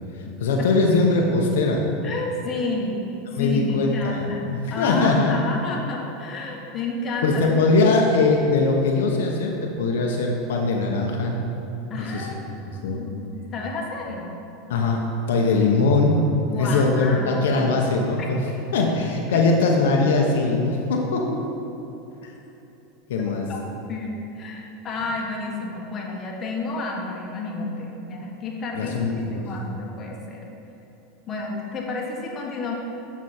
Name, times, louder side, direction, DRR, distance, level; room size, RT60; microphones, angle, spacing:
voice 1, 0.4-1.8 3.3-4.2 4.5-5.4 7.2-11.4 12.0-12.3 12.6-13.1 14.7-15.0 15.3-16.2 16.6-18.4 18.7-21.4 22.2-22.3 23.1-23.5 28.8-29.4, left 3 dB, 85° left, 0 dB, 0.9 m, -21 dB
voice 2, 2.0-3.0 3.4-7.9 11.9-14.3 16.5-17.6 18.2-18.3 23.5-23.6 23.9-30.4 31.3-32.7, left 3 dB, 30° left, -2 dB, 1.5 m, -31 dB
8.2 x 6.1 x 4.4 m, 3.0 s
supercardioid pair, 115°, 0 cm